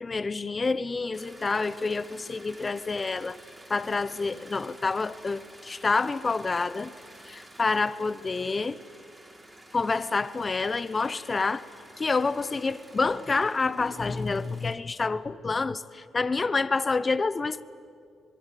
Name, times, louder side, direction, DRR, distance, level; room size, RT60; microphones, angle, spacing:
voice 1, 0.0-3.4 3.7-6.9 7.2-8.8 9.7-11.6 12.0-17.6, left 4 dB, 30° left, 16 dB, 0.8 m, -28 dB
sound 1, 1.1-14.8, right 1 dB, 10° right, 3.8 m, -51 dB
26.0 x 21.0 x 9.2 m, 2.3 s
cardioid pair, 90°, 0 cm